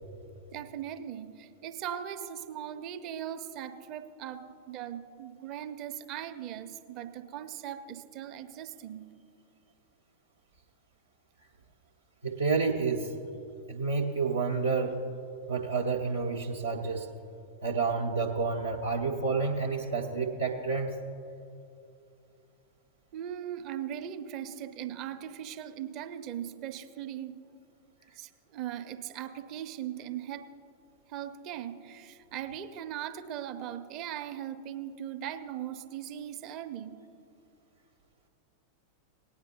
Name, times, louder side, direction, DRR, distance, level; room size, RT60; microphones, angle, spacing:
voice 1, 0.5-9.1 23.1-27.4 28.1-30.5 31.1-37.0, right 10 dB, 40° right, 9 dB, 0.6 m, -39 dB
voice 2, 12.2-13.1 13.7-15.0 15.5-17.1 17.6-20.9, right 4 dB, 80° right, -3 dB, 0.7 m, -29 dB
18.5 x 9.5 x 2.8 m, 2.6 s
figure-of-eight pair, 90°, 0 cm